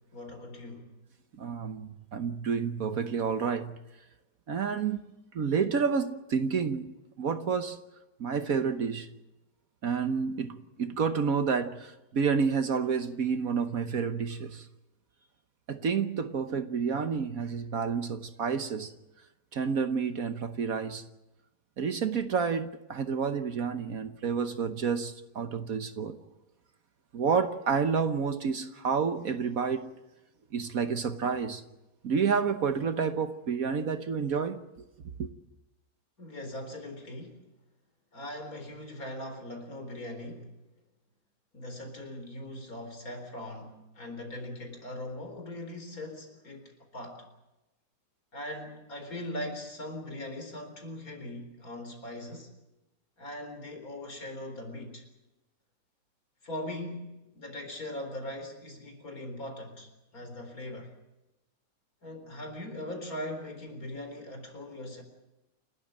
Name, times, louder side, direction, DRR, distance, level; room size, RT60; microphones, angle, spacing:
voice 1, 0.1-0.9 36.2-37.4 38.1-40.5 41.5-47.3 48.3-52.5 53.2-55.0 56.4-60.9 62.0-65.0, left 1 dB, 55° left, 4.6 m, -40 dB
voice 2, 1.4-3.7 4.5-5.0 5.3-7.8 8.2-9.1 9.8-14.6 15.7-18.9 19.5-21.0 21.8-26.2 27.1-29.9 30.5-31.6 32.0-34.6 35.2-35.3, right 6 dB, 60° right, 1.4 m, -29 dB
29.0 x 13.0 x 8.9 m
omnidirectional pair, 1.8 m